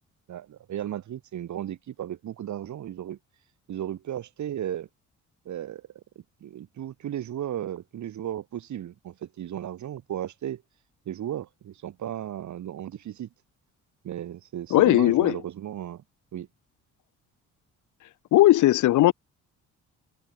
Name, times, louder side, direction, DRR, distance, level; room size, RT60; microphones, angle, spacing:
voice 1, 0.3-3.2 3.7-4.9 5.4-6.0 6.4-10.6 11.1-13.3 14.0-16.0 16.3-16.5, right 11 dB, 70° right, 6.3 m, -35 dB
voice 2, 14.7-15.4 18.3-19.1, left 15 dB, 75° left, 1.0 m, -18 dB
cardioid pair, 90°, 30 cm